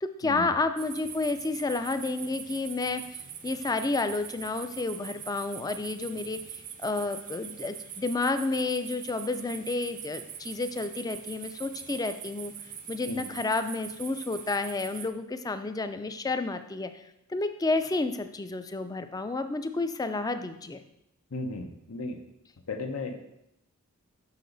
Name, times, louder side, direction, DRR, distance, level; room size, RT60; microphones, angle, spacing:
voice 1, 0.0-3.0 3.4-12.5 12.9-16.9 17.3-20.8, left 3 dB, 15° left, 9 dB, 0.3 m, -30 dB
sound 1, 0.8-15.1, right 8 dB, 40° right, 0.5 m, -43 dB
voice 2, 21.3-22.2 22.7-23.2, left 3 dB, 80° left, 5 dB, 0.8 m, -35 dB
6.6 x 5.8 x 3.9 m, 0.84 s
head